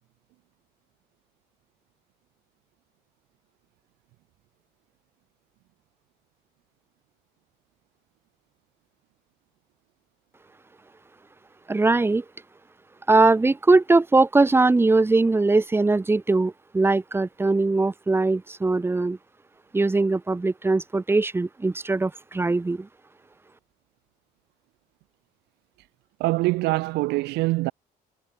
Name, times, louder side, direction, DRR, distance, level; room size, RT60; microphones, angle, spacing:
voice 1, 11.7-12.2 13.1-19.2 19.7-22.9, right 3 dB, 15° right, 1.2 m, -21 dB
voice 2, 26.2-27.7, right 21 dB, 80° right, 0.4 m, -24 dB
cardioid pair, 110°, 17 cm